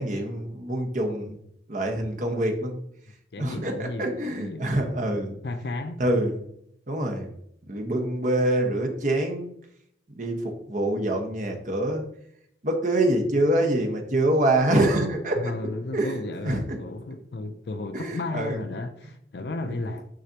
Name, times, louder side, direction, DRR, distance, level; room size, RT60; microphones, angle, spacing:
voice 1, 0.0-1.4 1.7-2.8 3.4-5.4 6.0-6.4 6.9-7.3 7.6-9.5 10.2-12.1 12.6-15.5 15.9-16.8 17.9-18.6, right 1 dB, 45° right, 1.2 m, -25 dB
voice 2, 3.3-4.8 5.4-6.0 15.4-20.1, left 2 dB, 60° left, 0.5 m, -34 dB
6.5 x 5.9 x 2.9 m
head